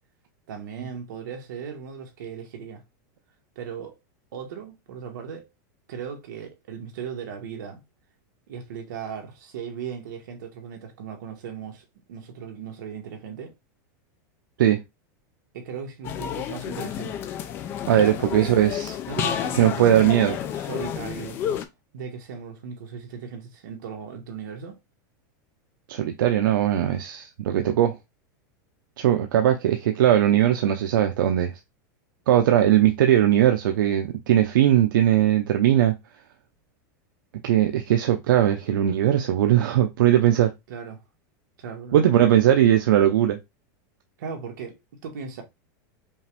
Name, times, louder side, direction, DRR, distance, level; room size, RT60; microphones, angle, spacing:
voice 1, 0.5-2.8 3.5-4.0 4.3-5.5 5.9-7.8 8.5-13.5 15.5-17.3 18.2-18.5 19.1-21.4 21.9-24.8 40.7-41.0 41.6-42.0 44.2-45.4, right 7 dB, 70° right, 1.6 m, -37 dB
sound 1, 16.0-21.7, left 9 dB, 20° left, 0.4 m, -30 dB
voice 2, 17.8-18.9 19.5-20.3 25.9-28.0 29.0-31.5 32.3-36.0 37.4-40.5 41.9-43.4, right 11 dB, 90° right, 0.6 m, -19 dB
5.4 x 2.5 x 3.4 m
supercardioid pair, 175°, 11 cm